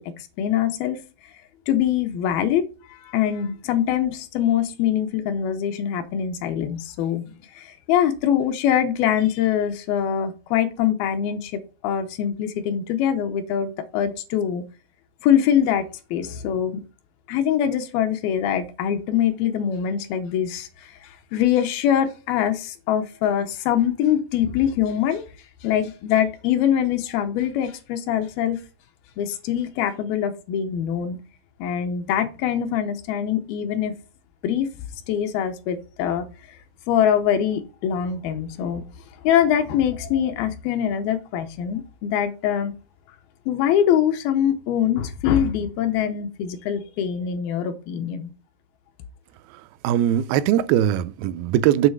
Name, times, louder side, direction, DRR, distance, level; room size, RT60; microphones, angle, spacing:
voice 1, 0.4-1.0 1.7-7.3 7.6-14.6 15.2-16.8 17.3-25.2 25.6-28.6 29.2-31.2 31.6-33.9 34.4-34.7 35.1-36.3 36.9-38.8 39.2-42.7 43.5-48.3, left 9 dB, 90° left, 2.6 m, -23 dB
voice 2, 49.8-51.9, right 11 dB, 90° right, 2.4 m, -20 dB
7.5 x 3.2 x 6.1 m
omnidirectional pair, 4.2 m